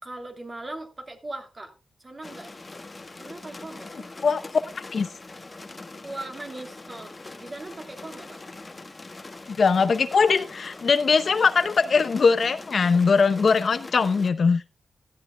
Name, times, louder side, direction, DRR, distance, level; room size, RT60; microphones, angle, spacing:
voice 1, 0.0-1.7 2.0-2.6 3.2-4.1 6.0-8.4, right 2 dB, 30° right, 5 dB, 2.7 m, -39 dB
sound 1, 2.2-14.3, left 2 dB, 25° left, 1.3 m, -43 dB
voice 2, 4.7-5.1 9.6-14.6, left 5 dB, 55° left, 11 dB, 0.7 m, -21 dB
16.0 x 12.0 x 2.2 m, 0.28 s
cardioid pair, 90°, 0 cm